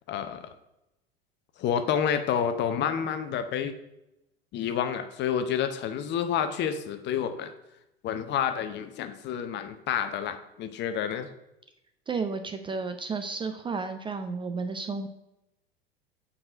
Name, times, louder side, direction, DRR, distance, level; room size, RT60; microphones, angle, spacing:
voice 1, 0.1-0.4 1.6-3.8 4.5-7.5 8.0-11.3, left 8 dB, 35° left, 9 dB, 0.7 m, -29 dB
voice 2, 12.1-15.1, right 4 dB, 15° right, 7 dB, 0.4 m, -32 dB
7.6 x 4.2 x 4.8 m, 0.89 s
figure-of-eight pair, 80°, 30 cm